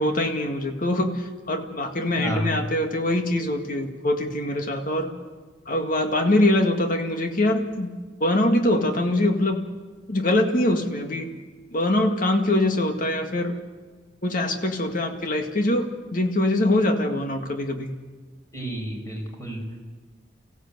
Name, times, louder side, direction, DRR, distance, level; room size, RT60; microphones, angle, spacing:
voice 1, 0.0-5.1 5.7-7.9 8.2-9.6 10.1-11.3 11.7-13.5 14.2-17.9, left 1 dB, 50° left, 4 dB, 2.0 m, -23 dB
voice 2, 2.2-2.6 18.5-19.8, right 1 dB, 20° left, 1 dB, 4.9 m, -30 dB
25.5 x 15.5 x 8.1 m, 1.4 s
head